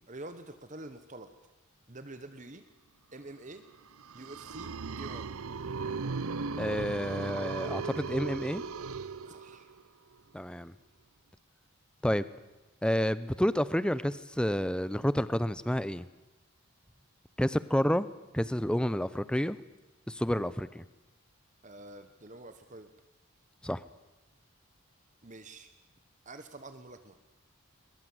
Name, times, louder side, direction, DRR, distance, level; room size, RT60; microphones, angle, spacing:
voice 1, 0.0-1.3 1.9-2.6 3.1-3.6 4.1-5.4 9.2-9.7 21.6-22.9 25.2-25.7 26.2-27.2, right 2 dB, 35° right, 9 dB, 1.3 m, -47 dB
sound 1, 3.9-9.8, right 4 dB, 75° right, 0.7 m, -37 dB
voice 2, 6.6-8.6 10.3-10.7 12.0-12.2 12.8-16.1 17.4-18.1 18.3-19.6 20.1-20.8 23.6-23.8, equal, 5° left, 16 dB, 0.7 m, -29 dB
21.5 x 21.5 x 8.0 m, 1.1 s
head